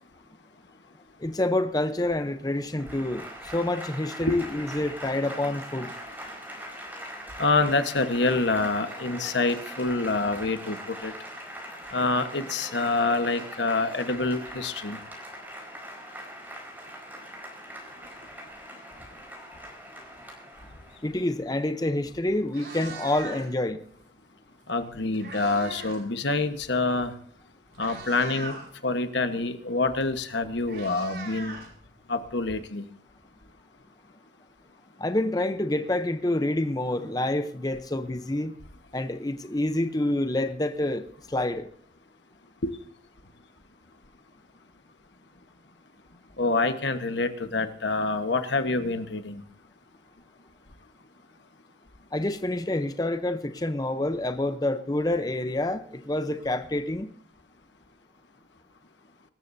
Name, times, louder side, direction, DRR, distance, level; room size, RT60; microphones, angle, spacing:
voice 1, 1.2-5.9 21.0-23.8 35.0-38.5 38.9-41.7 52.1-57.1, left 1 dB, 20° left, 0.7 m, -27 dB
Applause / Crowd, 2.7-21.3, equal, 10° right, 4.6 m, -41 dB
voice 2, 7.4-11.1 11.9-15.0 24.7-27.1 27.8-28.6 28.8-31.6 32.1-32.8 42.6-42.7 46.4-49.4, left 3 dB, 80° left, 1.3 m, -26 dB
Meow, 21.9-22.0 22.4-23.7 24.7-26.1 26.3-26.6 27.3-27.4 27.7-28.7 30.0-30.1 30.3-32.2, right 3 dB, 75° right, 4.7 m, -41 dB
25.0 x 13.5 x 2.7 m
head